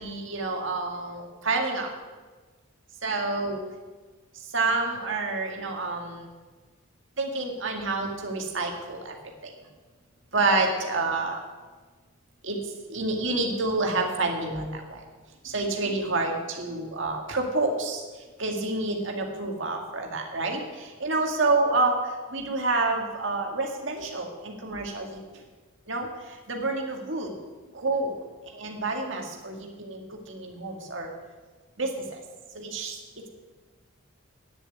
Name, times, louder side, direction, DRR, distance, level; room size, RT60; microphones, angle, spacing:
voice 1, 0.0-1.9 3.0-3.6 4.5-6.3 7.2-9.2 9.4-9.5 10.3-11.4 12.4-12.6 12.9-15.0 15.4-18.0 18.4-25.2 25.9-26.1 26.5-27.3 27.7-28.2 28.5-30.0 30.3-31.1 31.8-32.2 32.5-33.0, right 3 dB, 60° right, 2 dB, 2.0 m, -28 dB
10.0 x 7.1 x 9.2 m, 1.3 s
head